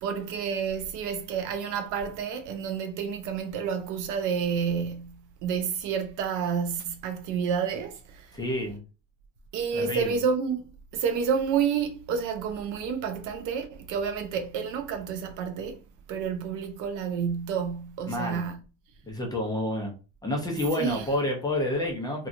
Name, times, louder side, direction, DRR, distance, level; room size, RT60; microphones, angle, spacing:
voice 1, 0.0-8.3 9.5-10.6 10.9-15.8 16.1-18.6 20.8-21.0, right 6 dB, 50° right, 0.5 m, -29 dB
voice 2, 8.3-8.8 9.7-10.1 18.1-18.4 19.0-19.9 20.2-22.3, left 1 dB, 10° left, 0.6 m, -29 dB
2.8 x 2.4 x 2.5 m
cardioid pair, 135°, 40 cm